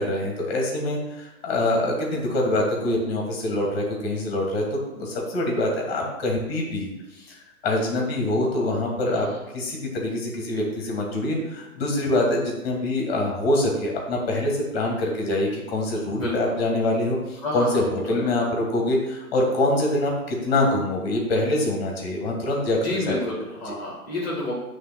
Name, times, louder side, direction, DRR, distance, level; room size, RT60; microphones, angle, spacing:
voice 1, 0.0-7.4 7.6-9.3 9.5-23.1 23.6-23.7, left 1 dB, 20° left, 0 dB, 1.7 m, -25 dB
voice 2, 16.1-16.4 17.4-18.2 22.8-24.5, left 2 dB, ahead, -5 dB, 2.0 m, -30 dB
9.5 x 3.3 x 6.0 m, 1.0 s
figure-of-eight pair, 130°, 43 cm